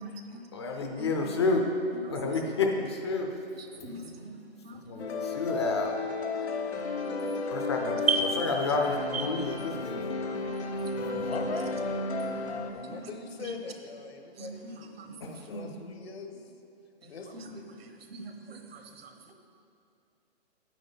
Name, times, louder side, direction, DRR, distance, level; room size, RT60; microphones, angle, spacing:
voice 1, 0.0-0.4 1.0-1.3 1.9-2.0 3.5-5.5 7.1-7.2 8.1-8.2 9.1-9.3 10.3-10.4 11.0-11.2 12.1-12.4 12.9-13.1 13.4-13.5 14.4-15.2 17.3-17.5 17.8-19.3, right 5 dB, 65° right, 5 dB, 1.2 m, -36 dB
voice 2, 0.5-1.7 2.1-3.3 3.8-3.9 4.9-5.9 7.5-8.0 8.4-10.0 15.5-15.7, left 3 dB, 25° left, 2 dB, 0.5 m, -30 dB
sound 1, 5.0-12.7, left 3 dB, 90° left, 1.0 m, -33 dB
voice 3, 11.0-11.9 12.6-16.5 17.0-17.6, left 4 dB, 70° left, 5 dB, 1.3 m, -42 dB
9.1 x 8.5 x 4.1 m, 2.6 s
hypercardioid pair, 160°, 32 cm